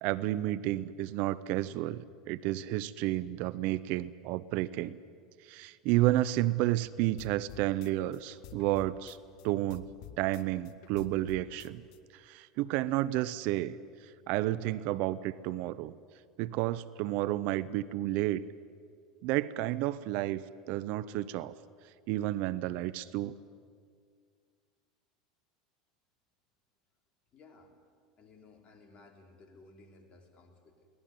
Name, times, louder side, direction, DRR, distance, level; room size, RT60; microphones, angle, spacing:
voice 1, 0.0-5.0 5.5-9.2 9.4-9.9 10.2-11.8 12.2-13.8 14.3-15.9 16.4-18.4 19.2-21.5 22.1-23.4, right 15 dB, 60° right, 18 dB, 0.7 m, -31 dB
sound 1, 7.2-9.4 9.7-12.0, left 10 dB, 65° left, 1.2 m, -50 dB
voice 2, 27.3-27.7 28.2-30.9, left 3 dB, 40° left, 3 dB, 4.4 m, -57 dB
23.5 x 18.0 x 9.4 m, 2.1 s
hypercardioid pair, 85°, 3 cm